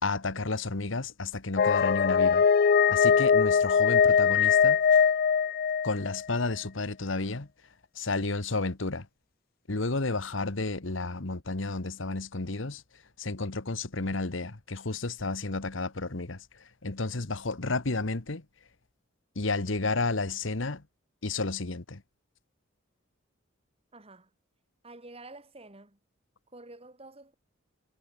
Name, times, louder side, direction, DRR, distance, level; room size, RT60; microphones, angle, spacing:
voice 1, 0.0-2.5 2.9-4.8 5.8-7.5 7.9-9.1 9.7-12.8 13.2-18.4 19.3-20.8 21.2-22.0, left 3 dB, 70° left, 1.4 m, -32 dB
sound 1, 1.6-6.2, left 6 dB, 45° left, 0.4 m, -22 dB
voice 2, 23.9-24.3 24.8-26.0 26.5-27.3, right 2 dB, 30° right, 3.0 m, -49 dB
head